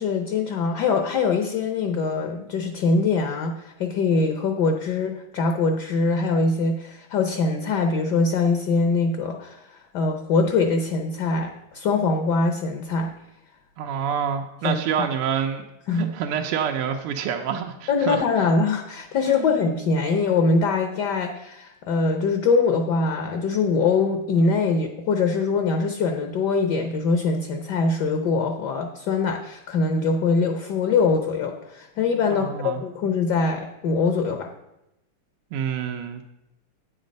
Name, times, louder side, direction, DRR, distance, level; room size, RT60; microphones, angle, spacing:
voice 1, 0.0-13.1 14.6-15.1 15.9-16.1 17.9-34.5, left 4 dB, 60° left, 6 dB, 1.2 m, -23 dB
voice 2, 13.8-15.7 15.9-18.5 19.3-19.5 32.3-32.8 35.5-36.3, right 8 dB, 80° right, 4 dB, 1.7 m, -27 dB
9.0 x 7.5 x 5.2 m, 0.88 s
omnidirectional pair, 2.4 m